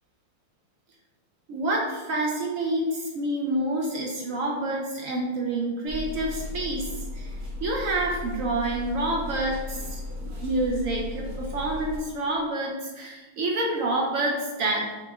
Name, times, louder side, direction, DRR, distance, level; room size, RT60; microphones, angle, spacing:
voice 1, 1.5-7.3 7.6-14.9, right 2 dB, 75° right, -1 dB, 0.7 m, -28 dB
sound 1, 5.9-12.0, left 2 dB, 55° right, 1.2 m, -36 dB
4.2 x 3.0 x 3.5 m, 1.3 s
omnidirectional pair, 2.0 m